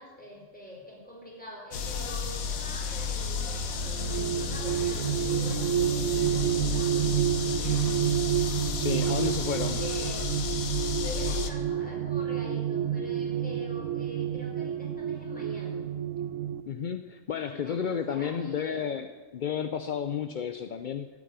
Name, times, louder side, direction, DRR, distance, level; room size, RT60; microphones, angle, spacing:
voice 1, 0.0-8.0 9.0-10.2 11.0-15.9 17.6-18.9, left 1 dB, 5° left, -3 dB, 4.3 m, -45 dB
sound 1, 1.7-11.5, left 5 dB, 85° left, 1.5 m, -32 dB
sound 2, 3.8-16.6, right 10 dB, 70° right, 1.2 m, -29 dB
voice 2, 8.7-9.8 16.7-21.1, left 8 dB, 55° left, 9 dB, 0.5 m, -32 dB
13.5 x 8.6 x 9.6 m, 1.5 s
omnidirectional pair, 1.4 m